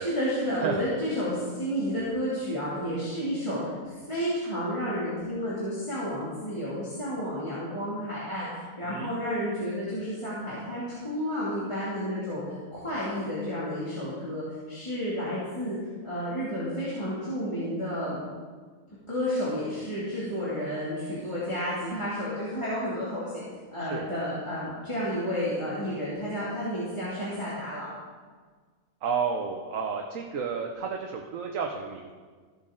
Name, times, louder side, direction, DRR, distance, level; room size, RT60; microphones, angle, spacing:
voice 1, 0.0-15.8 16.0-18.2 19.1-23.4 23.7-27.9, equal, 20° left, -10 dB, 2.5 m, -31 dB
voice 2, 29.0-32.1, right 6 dB, 70° right, 2 dB, 1.2 m, -31 dB
14.0 x 8.0 x 3.8 m, 1.5 s
omnidirectional pair, 1.5 m